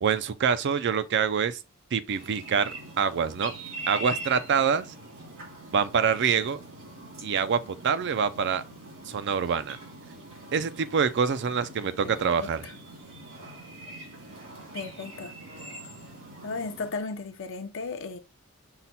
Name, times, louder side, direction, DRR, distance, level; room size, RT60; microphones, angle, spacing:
voice 1, 0.0-1.6 1.9-3.5 3.9-4.9 5.7-6.6 7.2-8.6 9.1-9.8 10.5-12.6, right 6 dB, 55° right, 0.4 m, -25 dB
sound 1, 2.1-16.9, right 2 dB, 80° right, 2.3 m, -43 dB
voice 2, 12.2-12.7 14.7-15.3 16.4-18.2, left 4 dB, 65° left, 0.6 m, -35 dB
5.7 x 2.2 x 4.0 m
head